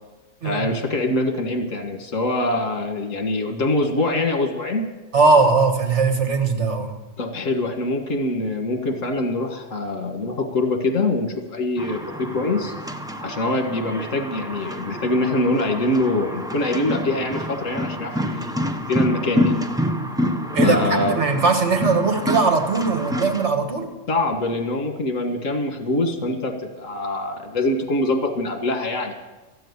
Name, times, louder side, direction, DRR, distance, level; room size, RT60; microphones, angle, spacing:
voice 1, 0.4-4.9 7.2-12.7 13.2-19.6 20.6-21.2 24.1-29.1, left 2 dB, 70° left, 5 dB, 2.0 m, -24 dB
voice 2, 5.1-6.9 20.5-23.9, right 4 dB, 60° right, 4 dB, 1.9 m, -19 dB
sound 1, 11.8-23.5, equal, 5° right, 0.5 m, -27 dB
13.5 x 7.8 x 9.6 m, 1.1 s
omnidirectional pair, 1.4 m